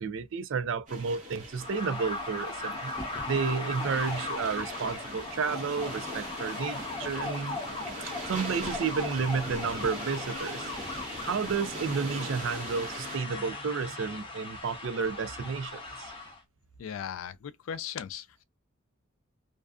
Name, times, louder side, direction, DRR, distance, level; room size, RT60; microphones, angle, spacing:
voice 1, 0.0-7.6 8.3-10.7 11.2-16.1, right 5 dB, 65° right, 0.4 m, -32 dB
sound 1, 0.9-13.2, right 1 dB, 40° right, 1.0 m, -41 dB
sound 2, 1.6-16.4, left 3 dB, 25° left, 0.7 m, -38 dB
sound 3, 3.0-11.9, right 1 dB, 10° right, 0.5 m, -47 dB
voice 2, 16.8-18.4, left 8 dB, 75° left, 0.3 m, -38 dB
2.4 x 2.2 x 2.3 m
head